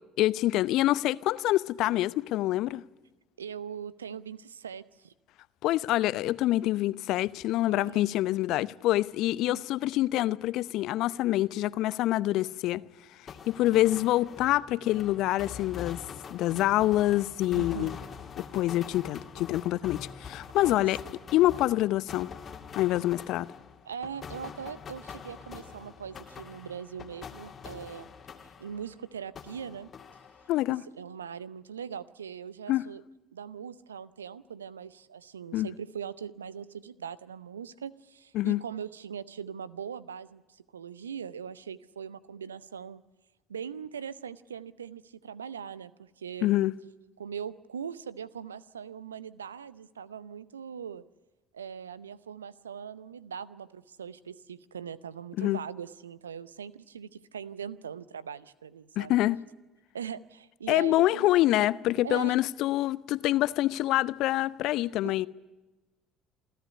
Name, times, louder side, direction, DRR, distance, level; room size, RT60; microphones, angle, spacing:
voice 1, 0.2-2.8 5.6-12.8 13.5-16.0 16.3-17.9 18.4-21.0 21.3-22.3 22.8-23.5 30.5-30.8 32.7-32.8 35.5-35.7 38.3-38.6 46.4-46.7 55.4-55.6 59.0-59.5 60.7-65.3, left 15 dB, 55° left, 0.7 m, -26 dB
voice 2, 3.4-5.1 7.7-8.0 9.4-9.6 13.7-14.0 17.5-18.1 20.6-20.8 23.8-28.1 28.6-29.9 31.0-33.0 33.3-43.0 43.5-46.5 47.2-51.0 51.5-59.2 59.9-61.6 62.0-62.4 65.0-65.3, right 7 dB, 80° right, 0.6 m, -41 dB
sound 1, 13.3-29.0 29.4-30.7, left 6 dB, 35° left, 2.2 m, -45 dB
28.0 x 13.0 x 9.7 m
figure-of-eight pair, 60°, 0 cm